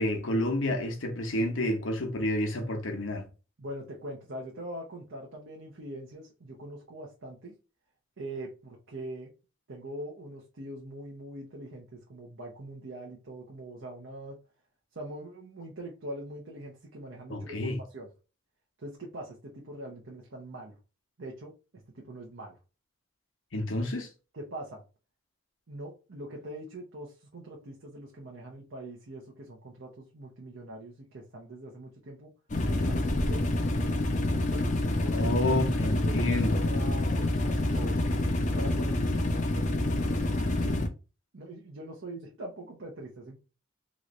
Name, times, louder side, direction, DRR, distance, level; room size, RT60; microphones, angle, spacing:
voice 1, 0.0-3.3 17.3-17.8 23.5-24.1 35.1-36.6, left 1 dB, 85° left, 0.9 m, -29 dB
voice 2, 3.6-7.6 8.2-9.3 9.7-14.4 14.9-18.1 18.8-20.8 21.2-21.5 21.9-22.5 24.3-24.8 25.7-32.3 32.8-33.5 34.3-34.7 35.0-35.3 35.8-36.2 36.6-38.0 38.5-40.8 41.3-43.4, right 1 dB, 75° right, 0.8 m, -43 dB
sound 1, 32.5-40.9, left 1 dB, 40° left, 0.5 m, -27 dB
3.1 x 2.5 x 3.1 m
head